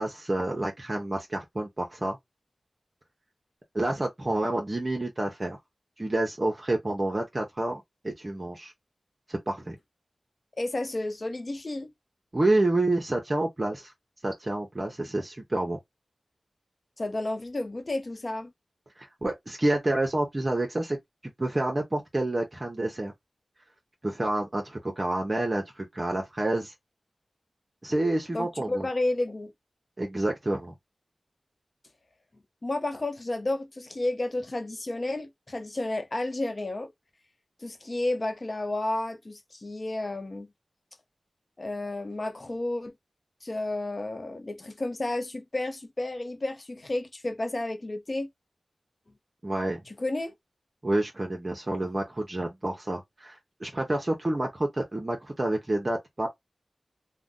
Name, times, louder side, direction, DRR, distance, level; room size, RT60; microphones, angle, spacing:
voice 1, 0.0-2.2 3.7-5.6 6.0-8.7 9.3-9.8 12.3-13.9 14.2-15.8 19.0-21.0 21.4-23.1 24.0-26.7 27.8-28.9 30.0-30.7 49.4-49.8 50.8-56.3, right 2 dB, 35° right, 0.7 m, -28 dB
voice 2, 10.6-11.9 17.0-18.5 28.3-29.5 32.6-36.9 37.6-40.5 41.6-42.9 43.4-48.3 49.9-50.3, left 2 dB, 45° left, 0.6 m, -31 dB
2.5 x 2.1 x 3.6 m
wide cardioid pair, 55°, 0 cm